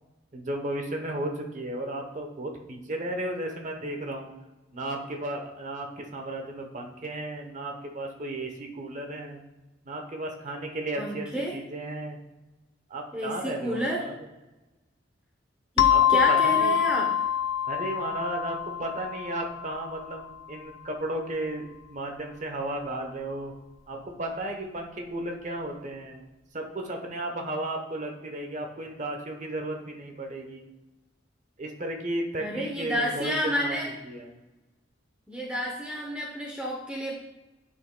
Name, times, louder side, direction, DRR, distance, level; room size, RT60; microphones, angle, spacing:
voice 1, 0.3-4.3 4.7-9.4 9.8-12.2 12.9-14.1 15.9-16.8 17.7-23.5 23.9-26.2 26.5-30.7 31.6-33.7 34.0-34.4, right 1 dB, 40° right, 3 dB, 0.9 m, -34 dB
voice 2, 11.0-11.5 13.1-14.0 15.8-17.1 32.4-33.9 35.3-37.2, equal, 5° right, -3 dB, 0.7 m, -30 dB
sound 1, 15.8-20.2, left 10 dB, 80° left, 0.4 m, -25 dB
9.5 x 5.6 x 2.2 m, 1.1 s
head